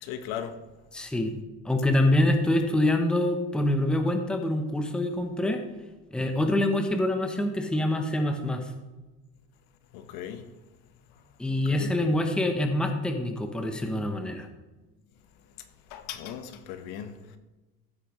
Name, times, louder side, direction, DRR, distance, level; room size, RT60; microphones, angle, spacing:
voice 1, 0.0-0.6 9.9-10.5 11.5-12.2 15.9-17.4, left 9 dB, 85° left, 1.3 m, -38 dB
voice 2, 0.9-1.3 1.6-5.6 6.1-8.6 11.4-14.5, left 1 dB, 5° left, 0.8 m, -25 dB
15.0 x 8.4 x 3.1 m
cardioid pair, 165°, 36 cm